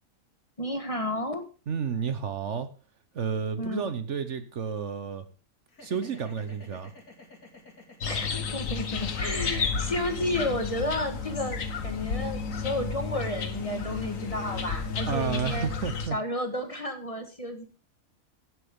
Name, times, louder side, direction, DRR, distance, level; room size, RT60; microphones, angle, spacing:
voice 1, 0.6-1.4 3.6-3.9 8.0-15.7 16.1-17.6, left 1 dB, 25° left, 6 dB, 1.5 m, -32 dB
voice 2, 1.7-2.7 3.1-5.2 5.8-6.9 15.1-16.2, right 6 dB, 60° right, 10 dB, 1.2 m, -31 dB
sound 1, 5.7-15.9, left 3 dB, 85° left, 2.9 m, -53 dB
sound 2, 8.0-16.1, left 5 dB, 65° left, 1.6 m, -32 dB
16.5 x 7.8 x 3.6 m, 0.33 s
omnidirectional pair, 1.5 m